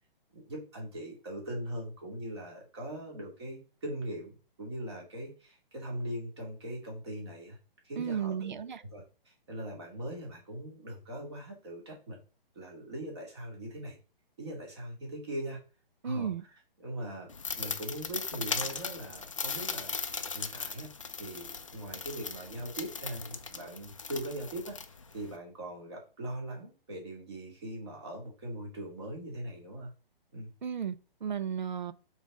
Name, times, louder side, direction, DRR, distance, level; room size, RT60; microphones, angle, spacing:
voice 1, 0.3-7.6 7.8-12.2 12.5-14.0 14.4-15.6 16.0-16.5 16.8-20.0 20.3-20.9 21.2-24.8 25.1-29.9 30.3-30.5, right 1 dB, 30° right, 2.3 m, -40 dB
voice 2, 8.0-8.8 16.0-16.4 30.6-31.0 31.2-31.9, right 8 dB, 55° right, 0.7 m, -33 dB
sound 1, 17.3-25.4, left 5 dB, 35° left, 0.5 m, -38 dB
5.9 x 4.1 x 6.0 m
hypercardioid pair, 180°, 29 cm